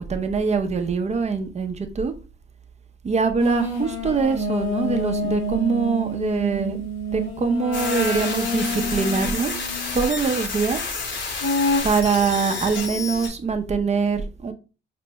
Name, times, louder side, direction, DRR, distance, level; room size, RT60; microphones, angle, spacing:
voice 1, 0.0-2.1 3.0-9.6 9.9-10.8 11.8-14.5, right 5 dB, 35° right, 0.7 m, -23 dB
sound 1, 3.4-10.0 11.4-11.8, left 1 dB, 90° left, 1.5 m, -27 dB
sound 2, 7.7-13.3, left 4 dB, 65° left, 1.0 m, -30 dB
5.1 x 2.2 x 2.8 m
cardioid pair, 90°, 20 cm